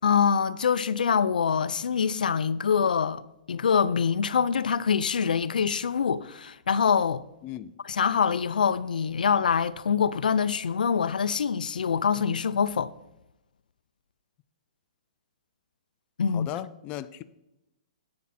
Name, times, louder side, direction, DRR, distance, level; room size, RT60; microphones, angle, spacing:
voice 1, 0.0-3.2 3.5-7.2 7.8-12.9 16.2-16.5, left 6 dB, 90° left, 0.5 m, -25 dB
voice 2, 7.4-7.7 16.3-17.2, left 13 dB, 25° left, 0.4 m, -36 dB
11.0 x 8.6 x 4.2 m
hypercardioid pair, 150°, 4 cm